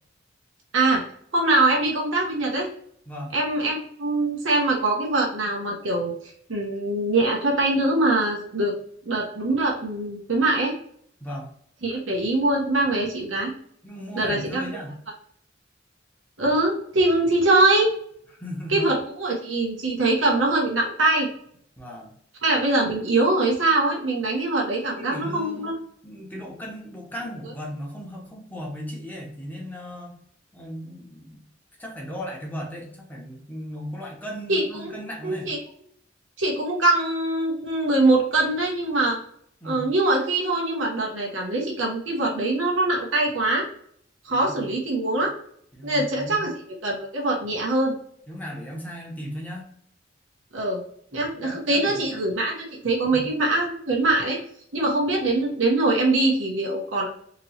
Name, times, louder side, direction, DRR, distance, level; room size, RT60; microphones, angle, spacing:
voice 1, 1.3-2.7 3.3-6.1 6.5-8.7 9.0-10.7 11.8-13.5 14.1-14.6 16.4-17.9 18.7-21.3 22.4-25.7 34.5-35.6 36.4-39.2 39.6-43.7 44.2-45.3 45.8-46.5 46.8-48.0 50.5-50.8 51.1-54.4 54.7-57.1, right 2 dB, 90° right, -2 dB, 0.8 m, -23 dB
voice 2, 13.8-15.0 18.4-18.9 21.8-22.1 25.0-25.8 26.0-30.2 30.5-31.4 31.8-35.5 39.6-39.9 44.3-44.7 45.7-46.5 48.3-49.7 51.1-52.0 53.1-53.3, equal, 10° left, -2 dB, 0.9 m, -36 dB
2.9 x 2.9 x 2.7 m, 0.65 s
head